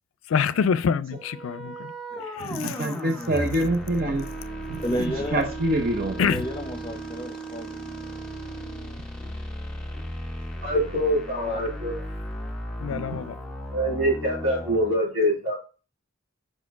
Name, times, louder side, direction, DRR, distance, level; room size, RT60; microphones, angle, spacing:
voice 1, 0.3-1.9 2.3-2.9 6.2-6.5 12.8-13.4, left 6 dB, 85° left, 0.4 m, -26 dB
sound 1, 1.1-15.0, left 1 dB, 5° left, 1.5 m, -36 dB
voice 2, 2.4-4.2 4.7-6.2 12.9-13.2, right 1 dB, 50° right, 0.8 m, -26 dB
Wind instrument woodwind instrument, 4.1-9.0, right 6 dB, 10° right, 0.8 m, -38 dB
voice 3, 4.8-5.4 6.2-7.9 11.5-11.6, equal, 25° left, 0.8 m, -32 dB
voice 4, 10.6-12.0 13.7-15.6, equal, 90° right, 3.5 m, -24 dB
5.1 x 4.3 x 4.6 m
head